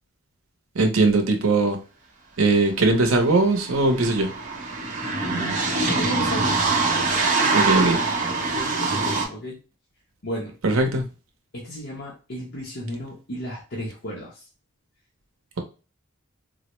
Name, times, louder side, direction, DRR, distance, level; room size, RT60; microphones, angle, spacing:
voice 1, 0.7-1.8 2.4-4.3 7.5-8.0 10.6-11.0, right 2 dB, 80° right, 4 dB, 0.7 m, -20 dB
sound 1, 2.7-2.8 3.0-9.2, right 3 dB, 40° right, 0.7 m, -24 dB
voice 2, 5.2-6.6 7.4-8.1 8.5-9.6 10.2-10.5 11.5-14.4, right 1 dB, 55° left, -5 dB, 0.9 m, -34 dB
3.9 x 2.0 x 3.0 m, 0.33 s
head